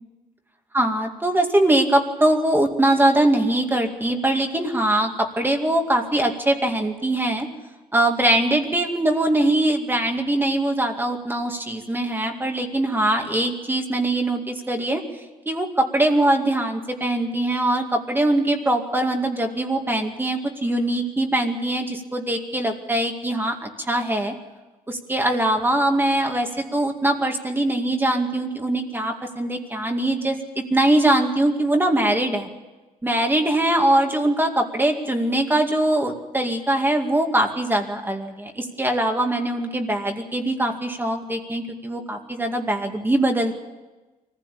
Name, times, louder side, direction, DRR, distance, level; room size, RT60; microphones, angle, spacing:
voice 1, 0.7-7.5 7.9-15.0 15.5-24.3 24.9-32.5 33.0-43.5, right 1 dB, 15° right, 3 dB, 2.3 m, -22 dB
24.0 x 15.5 x 8.5 m, 1.2 s
wide cardioid pair, 130°, 14 cm